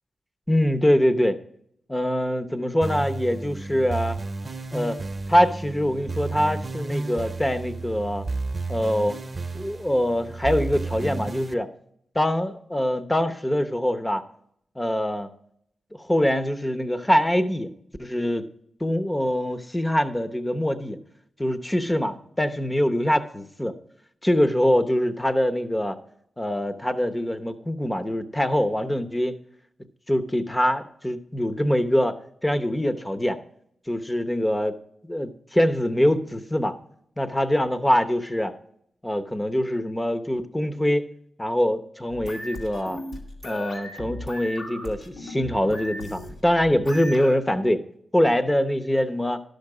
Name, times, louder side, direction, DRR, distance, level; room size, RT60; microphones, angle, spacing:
voice 1, 0.5-1.4 1.9-4.2 4.7-5.0 5.3-8.2 8.7-9.2 9.5-11.7 12.1-14.2 14.8-15.3 16.0-17.7 18.0-18.5 18.8-21.0 21.4-23.8 24.2-26.0 26.4-29.4 30.1-33.4 33.9-34.7 35.0-36.8 37.2-38.5 39.0-41.1 41.4-43.0 43.4-47.8 48.1-49.4, equal, 15° left, 10 dB, 0.9 m, -24 dB
sound 1, 2.8-11.5, right 3 dB, 35° right, 0.9 m, -32 dB
sound 2, 42.1-47.4, left 1 dB, 80° left, 2.5 m, -37 dB
11.5 x 6.6 x 4.9 m, 0.70 s
cardioid pair, 65°, 0 cm